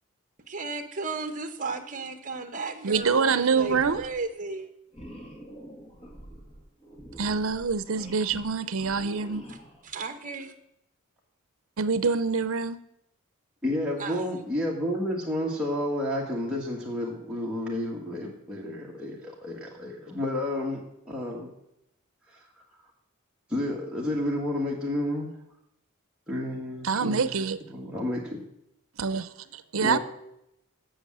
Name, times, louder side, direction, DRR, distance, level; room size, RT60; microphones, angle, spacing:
voice 1, 0.5-4.7 9.5-9.6 9.8-10.5 14.0-14.2, right 3 dB, 40° right, 1.0 m, -35 dB
voice 2, 2.8-4.0 7.2-9.4 11.8-12.8 26.8-27.6 29.0-29.3 29.7-30.0, right 5 dB, 70° right, 0.6 m, -25 dB
sound 1, 2.9-3.3 3.5-4.2 4.9-9.9, equal, 30° left, 2.0 m, -46 dB
voice 3, 13.6-20.8 21.1-21.5 23.5-25.3 26.3-27.3 27.7-28.4 29.8-30.0, left 1 dB, 5° right, 1.5 m, -30 dB
8.1 x 7.2 x 7.5 m
head